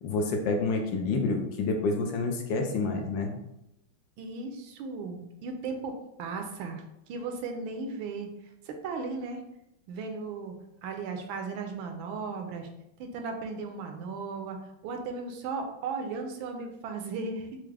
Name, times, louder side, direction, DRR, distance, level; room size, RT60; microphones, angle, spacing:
voice 1, 0.0-3.4, left 3 dB, 75° left, 3 dB, 1.2 m, -28 dB
voice 2, 4.2-8.3 8.6-9.4 9.9-10.5 10.8-12.7 13.0-14.6 14.8-17.5, right 4 dB, 80° right, 4 dB, 1.3 m, -36 dB
4.6 x 2.1 x 3.2 m, 0.85 s
omnidirectional pair, 2.2 m